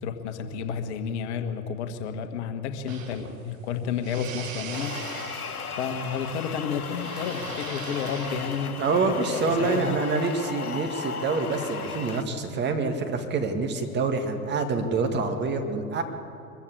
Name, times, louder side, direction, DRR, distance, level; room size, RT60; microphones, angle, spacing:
voice 1, 0.0-5.1 5.8-8.8 9.1-10.0, left 6 dB, 50° left, 7 dB, 1.7 m, -31 dB
sound 1, 2.9-9.6, right 6 dB, 60° right, 2.1 m, -42 dB
sound 2, 4.7-12.2, left 5 dB, 80° left, 1.3 m, -36 dB
voice 2, 8.8-16.0, right 4 dB, 25° right, 5 dB, 2.0 m, -26 dB
23.0 x 14.5 x 8.4 m, 2.7 s
figure-of-eight pair, 100°, 44 cm